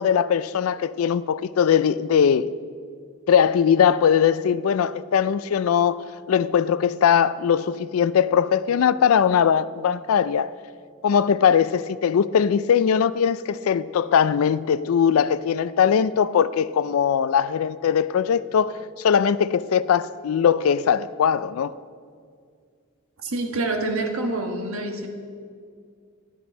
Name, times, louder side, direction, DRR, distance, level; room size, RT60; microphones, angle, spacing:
voice 1, 0.0-2.5 3.3-10.5 11.0-21.7, left 7 dB, 85° left, 0.4 m, -20 dB
voice 2, 23.2-25.1, right 2 dB, 80° right, 1.4 m, -27 dB
13.0 x 11.5 x 5.4 m
head